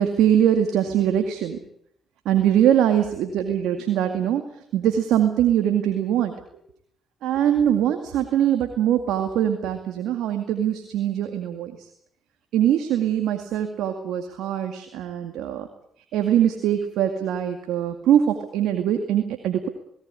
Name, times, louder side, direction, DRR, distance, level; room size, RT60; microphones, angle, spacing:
voice 1, 0.0-1.6 2.3-6.3 7.2-11.9 12.5-15.7 16.1-19.7, right 10 dB, 85° right, 6 dB, 2.1 m, -22 dB
18.5 x 18.5 x 9.8 m, 0.70 s
supercardioid pair, 60°, 0 cm